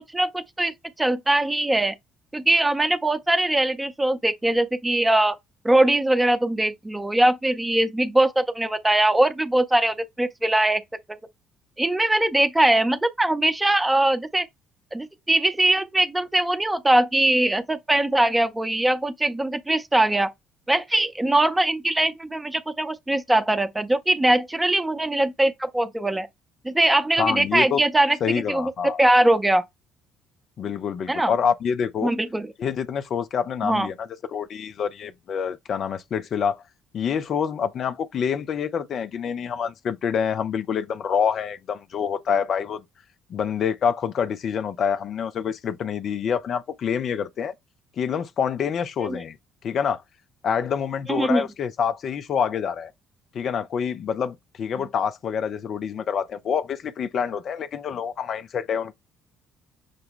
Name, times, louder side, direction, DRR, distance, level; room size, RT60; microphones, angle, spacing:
voice 1, 0.1-1.9 2.3-5.4 5.6-10.8 11.1-11.2 11.8-14.5 14.9-20.3 20.7-26.3 26.6-29.6 31.1-31.3 32.0-32.5 33.6-33.9 49.1-49.2 51.1-51.5, right 1 dB, 10° right, 0.7 m, -21 dB
voice 2, 27.2-27.8 28.2-29.0 30.6-32.1 32.6-36.6 36.9-42.8 43.3-47.5 48.0-49.4 49.6-50.0 50.4-52.9 53.3-58.9, left 7 dB, 45° left, 0.4 m, -26 dB
6.4 x 2.2 x 3.6 m
figure-of-eight pair, 50°, 0 cm